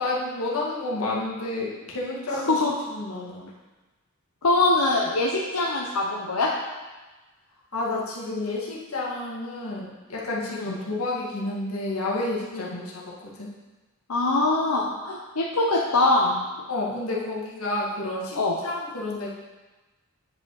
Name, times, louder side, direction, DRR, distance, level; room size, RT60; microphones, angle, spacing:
voice 1, 0.0-2.6 2.9-3.5 7.7-13.5 16.7-19.3, left 2 dB, 70° left, -4 dB, 1.8 m, -30 dB
voice 2, 2.3-2.7 4.4-6.5 10.5-10.8 12.5-12.8 14.1-16.4 18.4-18.6, left 2 dB, 90° left, -2 dB, 0.8 m, -23 dB
9.4 x 5.3 x 4.0 m, 1.2 s
head